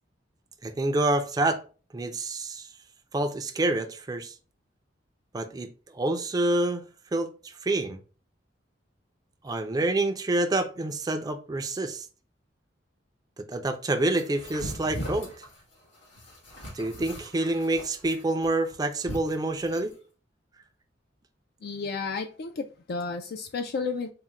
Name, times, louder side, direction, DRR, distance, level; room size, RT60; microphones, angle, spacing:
voice 1, 0.6-1.6 1.9-2.7 3.1-4.3 5.3-6.8 7.1-8.0 9.4-12.1 13.4-15.3 16.7-19.9, right 2 dB, 20° right, 0.4 m, -27 dB
sound 1, 14.1-19.9, equal, 80° left, 1.9 m, -40 dB
voice 2, 21.6-24.1, left 4 dB, 55° left, 0.4 m, -32 dB
3.7 x 2.1 x 4.1 m
head